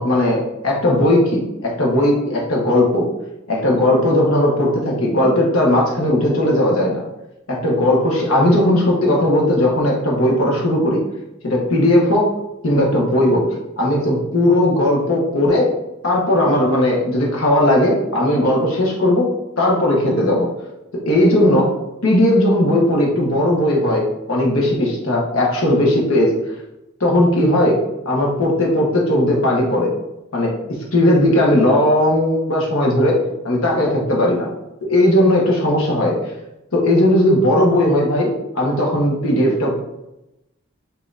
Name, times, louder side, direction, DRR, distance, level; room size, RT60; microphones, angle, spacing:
voice 1, 0.0-3.1 3.5-7.0 7.5-11.0 11.4-12.3 12.6-13.5 13.8-15.7 16.0-19.3 19.6-20.5 21.1-21.7 22.0-26.3 27.0-27.8 28.0-29.9 30.3-30.6 30.9-33.2 33.4-34.5 34.8-36.1 36.7-39.7, left 1 dB, 75° left, -2 dB, 1.1 m, -17 dB
5.3 x 2.8 x 2.5 m, 0.93 s
head